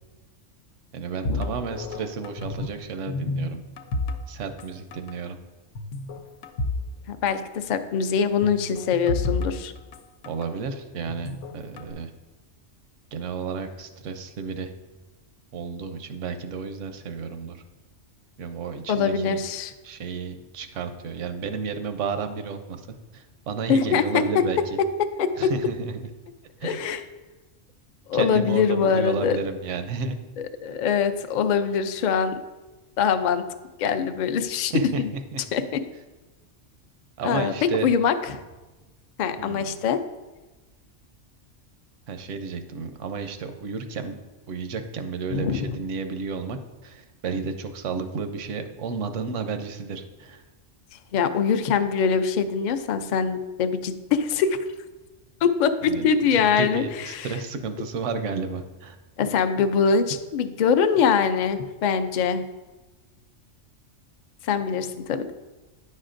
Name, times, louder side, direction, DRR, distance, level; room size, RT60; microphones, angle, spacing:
voice 1, 0.9-3.6 4.3-5.4 10.2-12.1 13.1-14.7 15.5-17.6 18.4-19.4 19.8-22.9 23.1-24.6 25.4-26.1 26.6-26.8 28.1-30.2 34.7-35.4 37.2-37.9 39.4-39.8 42.1-44.2 44.5-46.6 46.8-50.4 55.9-59.0, right 5 dB, 85° right, 8 dB, 1.0 m, -32 dB
sound 1, 1.3-2.8 3.1-4.7 4.9-5.2 5.8-6.9 7.1-7.2 8.4-10.5 11.1-11.9, left 2 dB, 85° left, 1.0 m, -30 dB
voice 2, 7.1-9.7 18.9-19.7 23.7-24.2 24.8-24.9 25.2-25.5 26.6-27.0 28.1-29.4 30.6-32.4 33.0-33.5 33.8-34.7 35.0-35.1 35.5-35.8 37.2-38.1 39.2-40.0 45.3-45.7 51.1-54.6 55.4-57.3 59.2-62.4 64.4-65.3, left 6 dB, 60° left, 9 dB, 0.5 m, -23 dB
9.6 x 6.4 x 2.5 m, 1.1 s
omnidirectional pair, 1.3 m